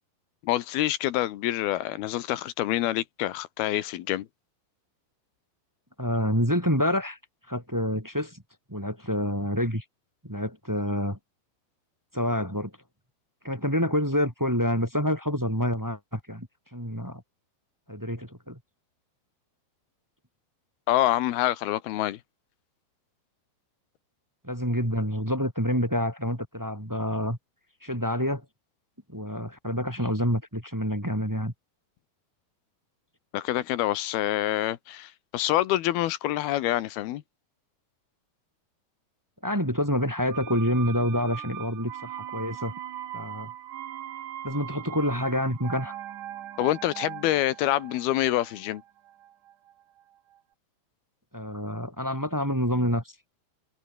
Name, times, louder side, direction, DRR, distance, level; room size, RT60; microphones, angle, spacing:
voice 1, 0.4-4.3 20.9-22.2 33.3-37.2 46.6-48.8, left 14 dB, 80° left, 3.0 m, -26 dB
voice 2, 6.0-7.2 7.5-8.4 8.7-9.8 10.2-11.2 12.1-12.7 13.4-17.2 17.9-18.6 24.4-27.4 27.8-28.5 29.1-31.5 39.4-42.7 43.1-43.5 44.4-46.0 51.3-53.2, equal, 5° right, 3.5 m, -27 dB
sound 1, 40.3-50.0 50.3-50.4, right 11 dB, 65° right, 2.8 m, -40 dB
omnidirectional pair, 4.4 m